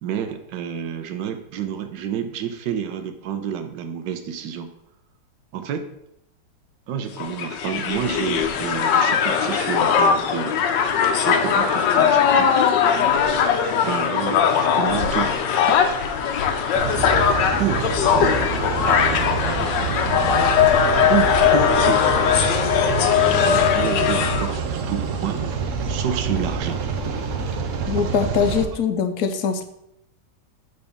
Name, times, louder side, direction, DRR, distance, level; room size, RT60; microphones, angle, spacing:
voice 1, 0.0-4.7 5.5-5.9 6.9-10.6 11.2-12.6 13.8-15.3 17.6-19.7 20.2-20.5 21.1-22.4 23.4-25.4 25.9-26.8, right 9 dB, 85° right, 8 dB, 1.3 m, -29 dB
Crowd, 7.2-24.6, left 7 dB, 90° left, 1.3 m, -20 dB
sound 1, 16.7-28.6, right 5 dB, 70° right, 0.8 m, -27 dB
voice 2, 27.9-29.6, left 6 dB, 70° left, 8 dB, 1.0 m, -22 dB
6.7 x 4.0 x 3.5 m, 0.79 s
omnidirectional pair, 1.9 m